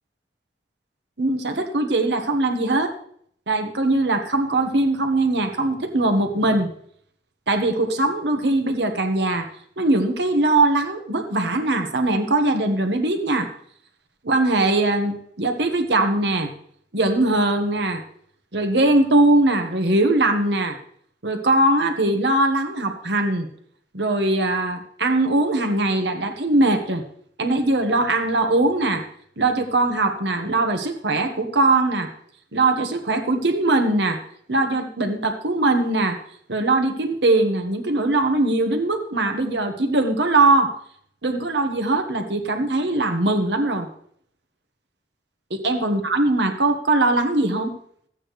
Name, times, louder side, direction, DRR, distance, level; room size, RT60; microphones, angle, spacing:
voice 1, 1.2-2.9 3.5-6.7 7.5-9.5 9.8-13.5 14.2-16.5 16.9-18.0 18.5-20.8 21.2-23.5 23.9-27.0 27.4-29.0 29.4-32.1 32.5-34.2 34.5-36.2 36.5-40.7 41.2-43.9 45.6-47.7, right 2 dB, 80° right, 6 dB, 1.3 m, -21 dB
13.5 x 8.6 x 3.2 m, 0.64 s
head